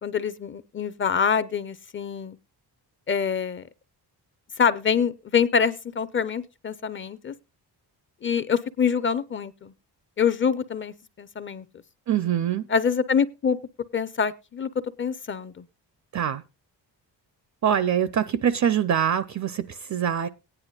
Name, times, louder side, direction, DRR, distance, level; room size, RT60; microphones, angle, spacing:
voice 1, 0.0-2.4 3.1-3.6 4.6-7.3 8.2-9.7 10.2-11.7 12.7-13.6 13.9-14.7 15.0-15.7, left 6 dB, 30° left, 0.5 m, -25 dB
voice 2, 12.1-12.7 16.1-16.4 17.6-20.3, right 9 dB, 45° right, 0.5 m, -24 dB
18.0 x 9.8 x 2.3 m
wide cardioid pair, 175°, 41 cm